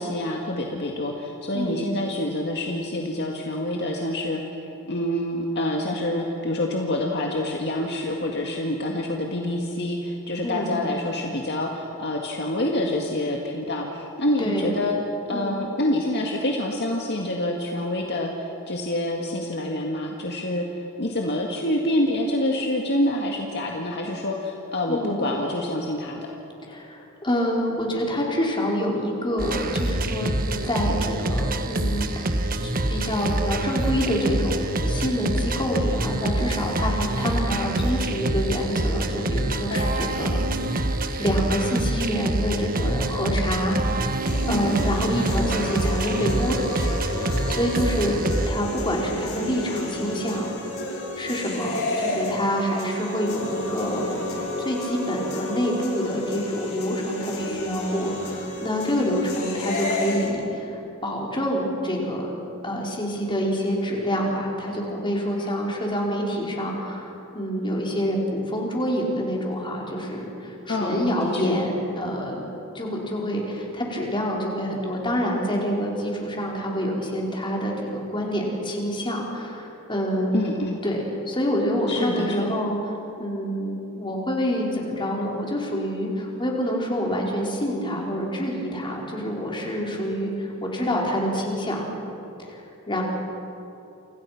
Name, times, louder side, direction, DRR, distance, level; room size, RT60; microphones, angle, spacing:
voice 1, 0.0-4.4 4.9-14.9 15.3-26.3 39.7-40.1 44.4-44.9 70.7-71.0 71.3-71.4 80.3-80.8 81.9-82.5, left 1 dB, 50° left, 0 dB, 2.0 m, -27 dB
voice 2, 10.4-10.7 14.4-14.7 15.3-15.5 24.9-25.2 26.7-32.3 32.6-40.4 40.7-40.9 41.2-44.2 44.4-48.2 48.5-50.5 51.2-54.1 54.6-62.3 62.6-80.3 80.8-82.9 83.2-91.9 92.5-93.0, equal, 20° left, -2 dB, 4.9 m, -27 dB
sound 1, 29.4-48.5, right 1 dB, 40° right, 1.4 m, -26 dB
sound 2, 44.3-60.3, left 1 dB, 65° left, 6.7 m, -31 dB
29.0 x 27.0 x 6.0 m, 2.9 s
head